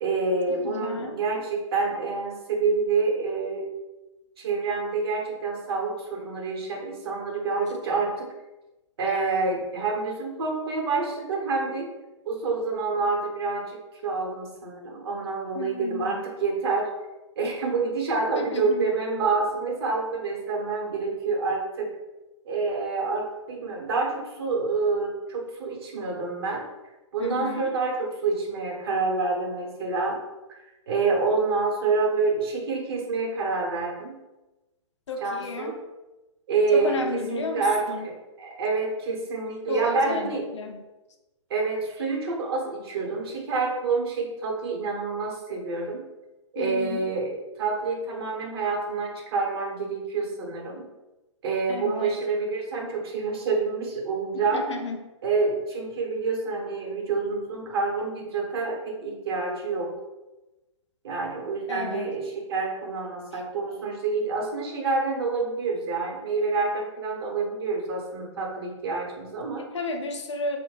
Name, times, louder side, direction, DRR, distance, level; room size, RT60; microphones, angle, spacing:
voice 1, 0.0-3.6 4.4-8.3 9.0-11.9 12.2-13.8 14.0-16.9 17.4-21.9 22.4-26.6 27.1-30.2 30.5-30.6 30.9-34.2 35.2-35.8 36.5-40.4 41.5-46.0 46.5-50.9 51.4-54.7 55.2-59.9 61.0-69.6, right 4 dB, 50° right, -1 dB, 0.8 m, -27 dB
voice 2, 0.6-1.2 15.5-16.2 18.4-18.9 27.2-27.7 35.1-35.7 36.7-38.1 39.7-40.8 46.6-47.1 51.7-52.1 54.5-55.0 61.7-62.1 63.3-63.4 69.6-70.6, left 3 dB, 65° left, 4 dB, 0.5 m, -32 dB
2.6 x 2.1 x 3.8 m, 1.1 s
figure-of-eight pair, 115°, 16 cm